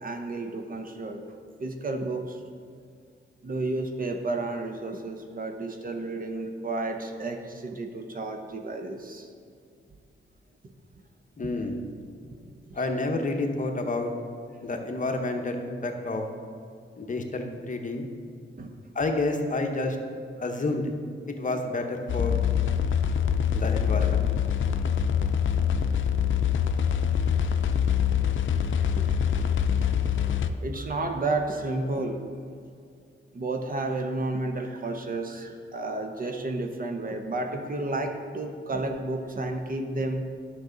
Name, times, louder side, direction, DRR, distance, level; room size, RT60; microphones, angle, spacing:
voice 1, 0.0-2.4 3.4-9.3 18.6-18.8 26.6-26.7 29.0-29.1 29.8-30.3 30.6-32.4 33.3-40.2, right 2 dB, 40° right, 4 dB, 0.9 m, -32 dB
voice 2, 11.4-11.8 12.7-14.1 14.6-16.2 17.0-18.1 18.9-20.0 20.4-20.9 21.4-22.4 23.5-24.2, left 2 dB, 40° left, 3 dB, 1.0 m, -29 dB
sound 1, 22.1-30.5, left 8 dB, 65° left, 0.5 m, -24 dB
10.5 x 6.3 x 3.9 m, 2.3 s
cardioid pair, 95°, 21 cm